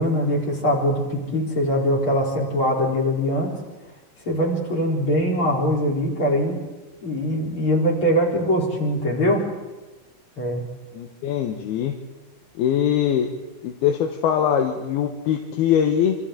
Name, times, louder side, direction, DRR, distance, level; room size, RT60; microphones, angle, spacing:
voice 1, 0.0-3.5 4.3-6.6 7.0-9.4 10.4-10.6, equal, 35° left, -2 dB, 4.4 m, -22 dB
voice 2, 10.9-11.9 12.6-13.3 13.6-16.2, left 9 dB, 80° left, 4 dB, 3.0 m, -22 dB
27.5 x 25.5 x 3.9 m, 1.1 s
omnidirectional pair, 4.4 m